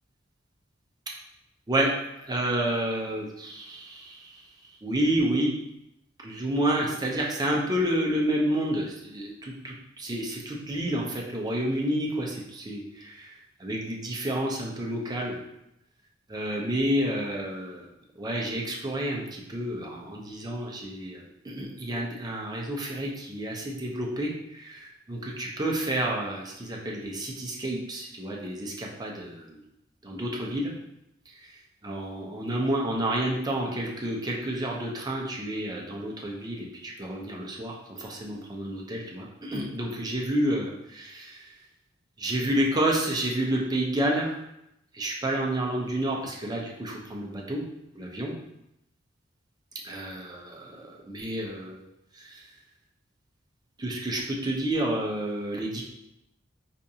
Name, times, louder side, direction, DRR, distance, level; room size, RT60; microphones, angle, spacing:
voice 1, 2.2-4.3 4.8-5.5 6.2-13.3 13.6-15.4 16.3-17.8 18.2-29.6 30.0-30.7 31.4-31.5 31.8-41.4 42.2-44.4 44.9-47.6 47.9-48.3 49.8-51.8 52.1-52.4 53.8-55.8, right 1 dB, 20° right, -2 dB, 0.6 m, -30 dB
4.6 x 2.5 x 2.7 m, 0.84 s
head